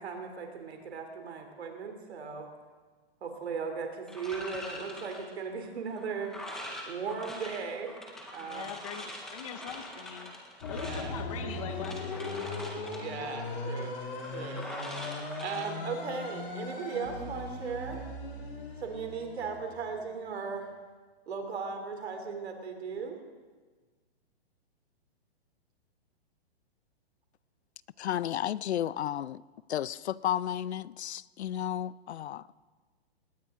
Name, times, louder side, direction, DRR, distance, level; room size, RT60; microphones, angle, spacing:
voice 1, 0.0-2.5 3.2-8.0 8.3-8.7 10.7-11.1 13.0-14.0 14.2-14.7 15.4-18.1 18.8-20.7 21.3-23.2, right 5 dB, 75° right, 4 dB, 3.3 m, -37 dB
sound 1, 4.1-16.4, left 1 dB, ahead, 0.6 m, -44 dB
voice 2, 8.4-10.3 10.7-12.2 12.7-12.8, left 8 dB, 30° left, 8 dB, 0.8 m, -42 dB
sound 2, 10.6-20.2, left 2 dB, 55° left, 5.5 m, -38 dB
voice 3, 28.0-29.4 29.7-32.5, left 11 dB, 85° left, 20 dB, 0.6 m, -33 dB
20.5 x 18.5 x 3.7 m, 1.4 s
hypercardioid pair, 170°, 32 cm